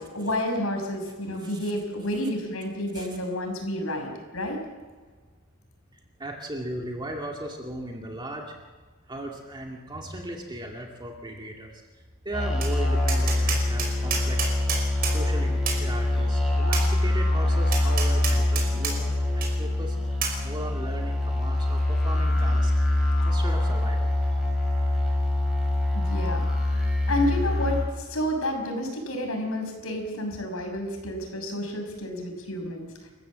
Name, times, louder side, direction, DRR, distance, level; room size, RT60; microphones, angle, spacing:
voice 1, 0.0-4.6 25.9-26.4 27.1-32.9, left 1 dB, 80° left, 3 dB, 5.9 m, -30 dB
voice 2, 1.0-1.7 2.9-3.2 6.2-8.5 9.1-11.7 12.2-14.5 15.0-20.0 20.4-22.7 23.2-24.1, right 1 dB, 20° right, 0 dB, 2.2 m, -37 dB
sound 1, 12.3-27.9, left 1 dB, 5° right, 6.2 m, -24 dB
Tap, 12.6-12.7 13.1-15.2 15.7-15.8 16.7-16.9 17.7-18.9 19.4-19.5 20.2-20.4, right 6 dB, 45° right, 5.6 m, -29 dB
29.0 x 15.0 x 7.5 m, 1.4 s
head